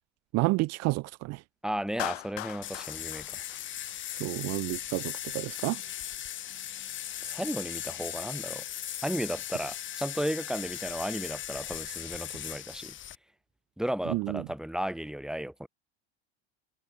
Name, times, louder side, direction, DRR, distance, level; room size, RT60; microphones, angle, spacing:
voice 1, 0.3-1.4 4.1-5.8 14.1-14.4, right 23 dB, 50° right, 0.7 m, -30 dB
voice 2, 1.6-3.3 7.2-8.6 9.0-12.9 13.8-15.7, equal, ahead, 4.3 m, -34 dB
Clapping, 2.0-4.3, left 30 dB, 65° left, 1.5 m, -39 dB
sound 1, 2.6-13.2, left 11 dB, 35° left, 1.5 m, -38 dB
hypercardioid pair, 100°, 33 cm